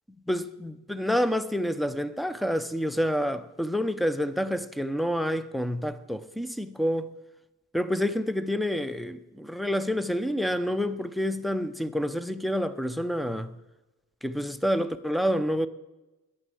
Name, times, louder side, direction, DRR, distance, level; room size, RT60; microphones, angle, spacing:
voice 1, 0.3-7.1 7.7-13.5 14.2-15.7, equal, ahead, 0.6 m, -28 dB
10.0 x 8.0 x 7.7 m
cardioid pair, 90°, 32 cm